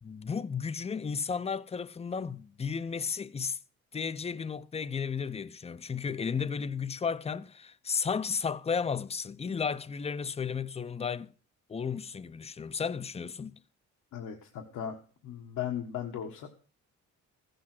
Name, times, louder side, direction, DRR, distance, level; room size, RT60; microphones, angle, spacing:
voice 1, 0.0-3.6 3.9-11.3 11.7-13.6, left 6 dB, 20° left, 0.6 m, -33 dB
voice 2, 14.1-15.0 15.2-16.5, left 9 dB, 75° left, 1.6 m, -37 dB
15.0 x 7.7 x 6.0 m
cardioid pair, 90°, 30 cm